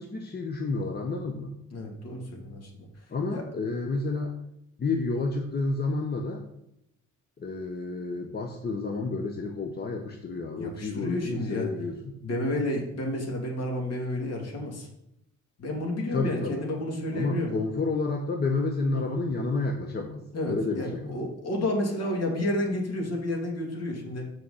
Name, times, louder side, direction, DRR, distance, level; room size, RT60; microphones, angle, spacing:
voice 1, 0.0-1.5 3.1-4.3 4.8-6.5 7.4-12.2 16.1-16.6 17.1-21.2, left 3 dB, 35° left, 3 dB, 1.0 m, -30 dB
voice 2, 1.7-2.9 3.3-3.5 10.6-11.7 12.2-14.9 15.6-17.5 18.9-19.2 20.3-24.2, left 1 dB, 55° left, 0 dB, 2.6 m, -31 dB
6.5 x 6.3 x 5.7 m, 0.80 s
cardioid pair, 90°, 30 cm